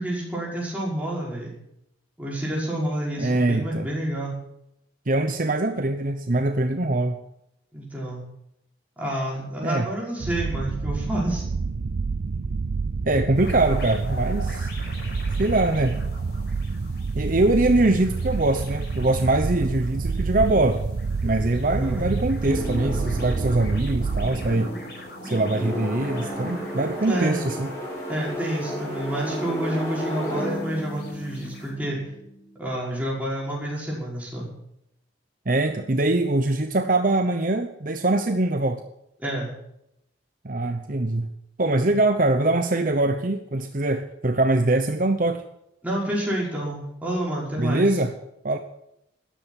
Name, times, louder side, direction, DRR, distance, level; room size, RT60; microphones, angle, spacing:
voice 1, 0.0-1.5 2.2-4.3 7.7-8.2 9.0-11.4 21.6-22.1 27.0-27.4 28.1-32.0 32.6-34.5 39.2-39.5 45.8-47.9, right 1 dB, 10° right, -4 dB, 5.6 m, -29 dB
voice 2, 3.2-3.9 5.1-7.2 9.6-9.9 13.0-14.7 15.4-16.0 17.1-20.8 21.2-24.7 25.2-27.7 35.5-38.8 40.4-41.3 41.6-45.4 47.6-48.1 48.4-48.6, right 2 dB, 45° right, 7 dB, 0.9 m, -23 dB
sound 1, 10.2-24.5, right 4 dB, 75° right, 0.5 m, -28 dB
sound 2, 13.3-31.7, left 2 dB, 60° left, 5.7 m, -45 dB
sound 3, 22.4-32.4, equal, 15° left, 4.5 m, -33 dB
13.5 x 10.0 x 8.4 m, 0.80 s
head